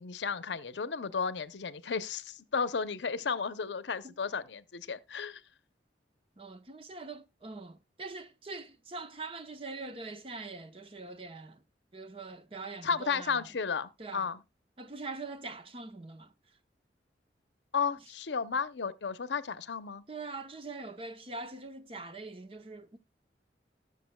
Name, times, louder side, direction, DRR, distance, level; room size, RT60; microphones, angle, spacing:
voice 1, 0.0-5.4 12.8-14.4 17.7-20.0, left 5 dB, 85° left, 0.7 m, -33 dB
voice 2, 6.4-11.6 11.9-13.5 14.0-14.3 14.8-16.3 20.1-23.0, right 3 dB, 30° right, 0.8 m, -43 dB
19.0 x 6.6 x 2.2 m
head